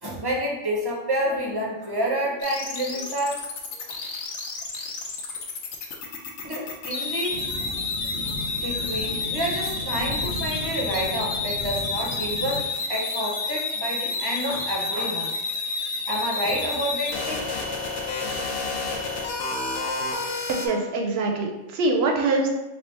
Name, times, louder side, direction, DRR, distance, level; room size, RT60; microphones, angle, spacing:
voice 1, 0.0-3.4 6.4-7.4 8.2-15.3 16.1-17.5, equal, 25° right, -3 dB, 0.6 m, -29 dB
sound 1, 2.4-20.7, left 3 dB, 80° left, 0.9 m, -30 dB
sound 2, 7.3-12.6, left 1 dB, 25° left, 0.6 m, -36 dB
voice 2, 20.5-22.5, right 3 dB, 65° right, 2 dB, 0.8 m, -24 dB
3.3 x 2.4 x 4.3 m, 1.1 s
omnidirectional pair, 1.2 m